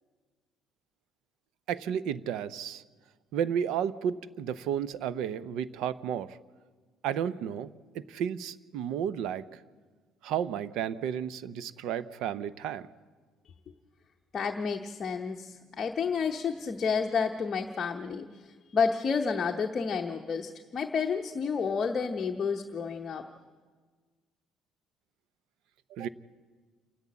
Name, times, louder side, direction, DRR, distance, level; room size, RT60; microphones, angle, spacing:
voice 1, 1.7-2.8 3.3-6.4 7.0-9.6 10.2-12.9 25.9-26.1, right 9 dB, 70° right, 16 dB, 0.6 m, -32 dB
voice 2, 14.3-23.2, left 5 dB, 30° left, 3 dB, 0.9 m, -30 dB
28.0 x 11.0 x 8.5 m, 1.5 s
cardioid pair, 160°, 0 cm